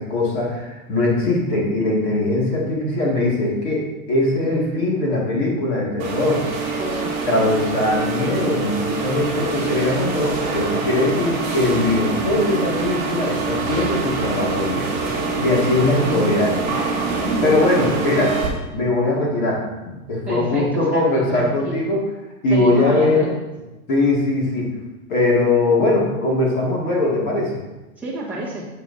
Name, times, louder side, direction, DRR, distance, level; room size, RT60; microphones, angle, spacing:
voice 1, 0.0-6.5 7.3-14.9 15.4-16.8 17.4-18.4 18.7-22.0 22.4-23.3 23.9-24.7 25.1-27.6, left 2 dB, 35° left, -3 dB, 2.3 m, -20 dB
sound 1, 6.0-18.5, right 4 dB, 30° right, 1.7 m, -25 dB
voice 2, 6.8-7.5 15.8-16.2 17.5-17.9 20.3-21.8 22.5-23.3 28.0-28.7, right 1 dB, 5° right, -8 dB, 1.2 m, -29 dB
9.2 x 6.9 x 2.7 m, 1.0 s
hypercardioid pair, 165°, 44 cm